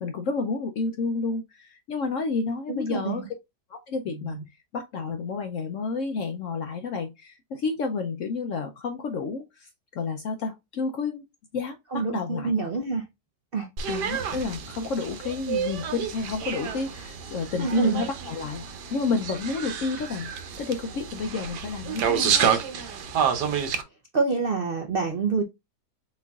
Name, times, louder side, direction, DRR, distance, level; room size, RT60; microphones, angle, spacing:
voice 1, 0.0-3.3 3.7-4.4 4.7-11.2 11.5-12.5 13.9-18.6 18.9-20.3 20.6-22.5, left 4 dB, 65° left, 0.8 m, -30 dB
voice 2, 2.7-3.3 4.3-4.4 11.9-13.1 13.5-13.7 17.6-18.0 24.1-25.4, right 4 dB, 65° right, 0.5 m, -26 dB
sound 1, 13.8-23.8, right 7 dB, 80° right, 1.4 m, -29 dB
4.4 x 4.0 x 2.3 m
omnidirectional pair, 1.8 m